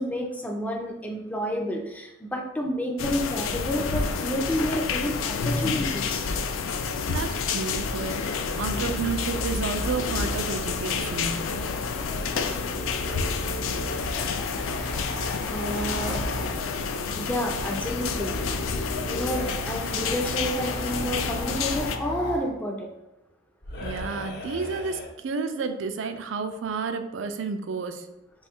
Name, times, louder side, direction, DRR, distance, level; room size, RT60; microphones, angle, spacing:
voice 1, 0.0-6.2 15.5-16.2 17.2-18.3 19.0-22.9, equal, 10° left, 1 dB, 0.4 m, -30 dB
sound 1, 3.0-22.0, left 5 dB, 90° left, 0.3 m, -29 dB
voice 2, 7.1-11.3 23.8-28.1, right 5 dB, 75° right, 7 dB, 0.4 m, -31 dB
sound 2, 8.6-16.5 17.5-22.5 23.6-25.1, equal, 55° left, 0.7 m, -35 dB
3.1 x 2.3 x 4.2 m, 0.91 s
head